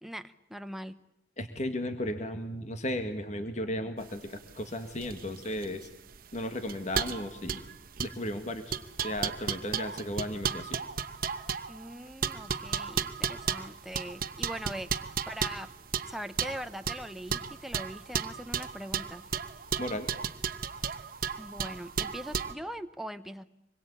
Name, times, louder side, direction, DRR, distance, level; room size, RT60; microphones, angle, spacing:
voice 1, 0.0-1.0 11.7-15.7 16.1-19.3 21.4-23.4, equal, ahead, 9 dB, 0.9 m, -41 dB
voice 2, 1.4-5.9 6.3-7.7 8.0-10.8 19.8-20.1, left 1 dB, 35° left, 7 dB, 1.8 m, -35 dB
sound 1, 4.1-22.5, right 7 dB, 50° right, 1.0 m, -34 dB
26.0 x 21.5 x 8.5 m, 0.81 s
head